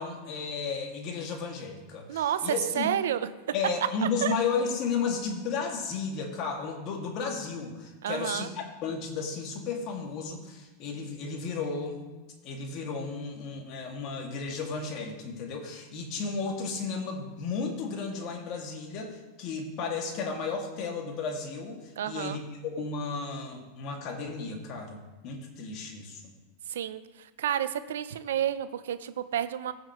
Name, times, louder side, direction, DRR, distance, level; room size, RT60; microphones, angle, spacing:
voice 1, 0.0-2.9 3.5-12.0 12.4-26.2, left 4 dB, 50° left, 1 dB, 2.1 m, -33 dB
voice 2, 2.1-3.3 4.2-4.3 8.0-8.5 22.0-22.4 26.7-29.7, right 10 dB, 80° right, 13 dB, 0.6 m, -30 dB
15.5 x 6.6 x 3.1 m, 1.2 s
hypercardioid pair, 110°, 0 cm